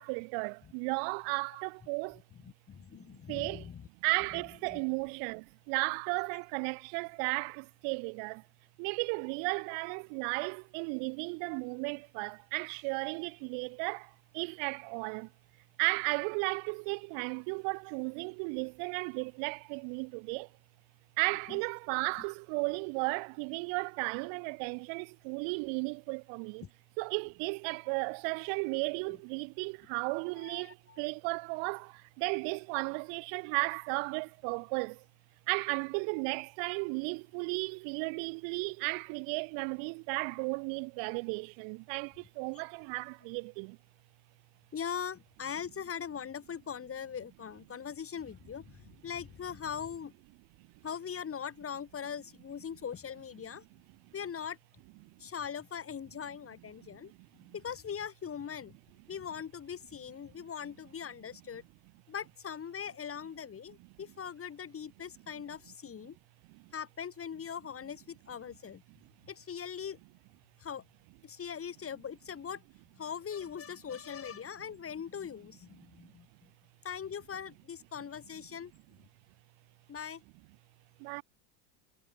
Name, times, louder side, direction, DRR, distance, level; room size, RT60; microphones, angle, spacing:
voice 1, 0.0-2.2 3.3-3.7 4.0-8.4 8.8-15.3 15.8-20.5 21.2-26.6 27.0-35.0 35.5-43.8 50.6-50.7 55.0-55.2 56.8-57.5 66.5-66.7 76.0-76.1 81.0-81.2, right 38 dB, 65° right, 3.0 m, -35 dB
voice 2, 2.1-3.9 4.2-4.8 21.3-21.7 22.2-22.3 29.1-29.2 30.3-31.0 44.7-50.1 50.8-53.6 54.1-54.6 55.2-57.1 57.5-58.7 59.1-61.6 62.1-66.2 66.7-68.8 69.3-70.0 70.6-70.8 71.2-72.6 73.0-76.5 76.8-78.7 79.9-80.2, left 7 dB, 30° left, 4.8 m, -41 dB
supercardioid pair, 120°, 48 cm